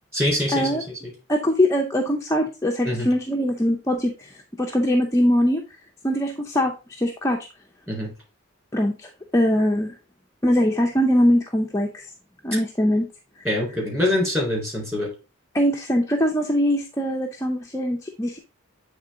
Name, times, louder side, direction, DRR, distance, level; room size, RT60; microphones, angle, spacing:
voice 1, 0.1-0.7 2.8-3.1 7.9-8.1 13.4-15.1, left 1 dB, 10° right, -4 dB, 3.9 m, -24 dB
voice 2, 1.3-4.1 4.6-5.6 6.0-7.4 8.7-9.9 10.4-12.0 12.4-13.1 15.5-18.4, equal, 15° left, 0 dB, 0.6 m, -22 dB
8.0 x 3.7 x 3.7 m, 0.31 s
head